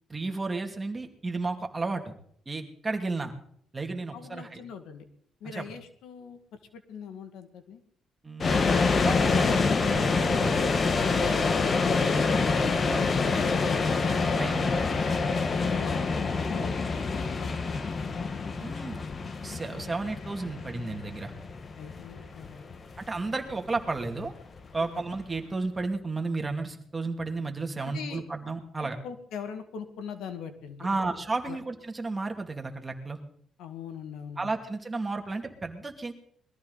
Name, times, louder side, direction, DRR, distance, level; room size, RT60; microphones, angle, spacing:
voice 1, 0.1-2.1 2.5-3.3 3.7-4.6 5.4-5.6 8.2-8.7 9.0-10.6 12.6-13.4 14.4-14.7 18.6-19.0 19.4-21.3 23.0-24.3 24.7-29.0 30.8-33.2 34.4-36.1, right 3 dB, 20° right, 4 dB, 2.5 m, -33 dB
voice 2, 4.1-5.0 5.4-6.4 6.7-7.8 13.0-13.9 15.5-16.7 17.1-17.8 21.8-22.6 23.2-23.3 27.8-28.2 28.8-31.1 31.5-31.6 33.6-34.6, left 7 dB, 85° left, 8 dB, 1.9 m, -42 dB
sound 1, 8.4-25.4, left 4 dB, 40° left, 1.4 m, -27 dB
21.5 x 14.0 x 4.0 m, 0.64 s
cardioid pair, 90°, 0 cm